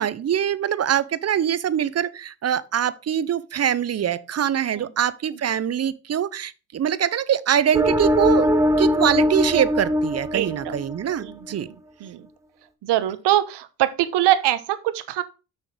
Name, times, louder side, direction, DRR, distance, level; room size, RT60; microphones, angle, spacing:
voice 1, 0.0-8.5 8.8-11.7, right 9 dB, 35° right, 0.7 m, -23 dB
sound 1, 7.7-11.3, equal, 5° right, 0.9 m, -21 dB
voice 2, 10.3-10.7 11.2-11.7 12.0-12.3 12.8-15.2, right 13 dB, 65° right, 1.0 m, -23 dB
6.4 x 6.4 x 3.8 m
hypercardioid pair, 60°, 44 cm